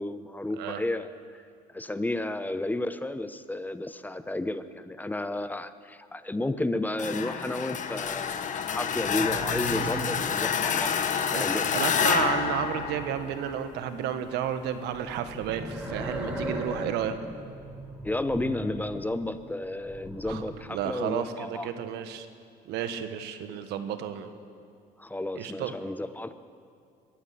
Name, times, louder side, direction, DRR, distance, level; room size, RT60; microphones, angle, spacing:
voice 1, 0.0-1.4 1.7-10.9 11.3-11.7 18.0-21.7 25.0-26.3, left 2 dB, 10° left, 12 dB, 0.8 m, -32 dB
sound 1, 7.0-13.7, left 7 dB, 50° left, 1.3 m, -28 dB
sound 2, 8.7-11.3 12.2-14.0 14.8-19.3 19.6-20.4, right 1 dB, 5° right, 3.6 m, -39 dB
voice 2, 11.3-17.2 20.2-20.4 20.7-22.3 22.6-24.3 25.3-25.8, right 9 dB, 90° right, 10 dB, 1.4 m, -32 dB
22.5 x 14.5 x 8.4 m, 2.3 s
cardioid pair, 110°, 17 cm